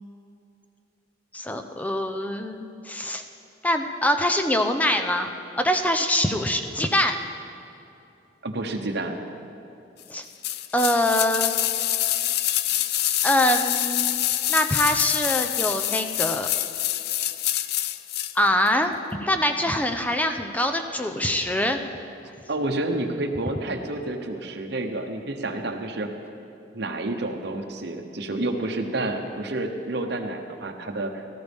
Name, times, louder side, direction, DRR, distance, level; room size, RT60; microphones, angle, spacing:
voice 1, 1.3-3.2 3.6-7.2 10.1-10.2 10.7-11.5 13.2-16.5 18.4-18.9 19.2-21.8, left 1 dB, 10° left, 6 dB, 0.6 m, -24 dB
voice 2, 8.4-9.2 22.5-26.1 26.7-31.2, right 2 dB, 65° right, 3 dB, 1.0 m, -29 dB
sound 1, 10.4-18.4 18.7-18.8, left 13 dB, 60° left, 0.4 m, -26 dB
18.5 x 13.0 x 3.6 m, 2.8 s
head